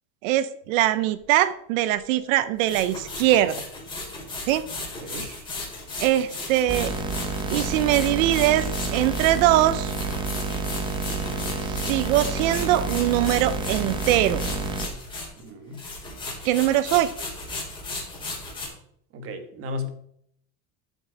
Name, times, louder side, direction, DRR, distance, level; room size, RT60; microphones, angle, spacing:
voice 1, 0.2-3.6 4.5-4.7 6.0-6.9 7.5-9.9 11.6-14.4 16.4-17.1, right 13 dB, 70° right, 15 dB, 0.8 m, -22 dB
sound 1, 1.2-1.3 2.6-15.5 15.7-18.7, left 2 dB, 10° left, 4.6 m, -35 dB
voice 2, 5.0-5.3 15.4-15.8 19.1-19.9, left 2 dB, 30° right, 8 dB, 1.4 m, -34 dB
sound 2, 6.7-14.9, right 4 dB, 10° right, 0.9 m, -29 dB
13.0 x 7.9 x 5.0 m, 0.69 s
cardioid pair, 180°, 41 cm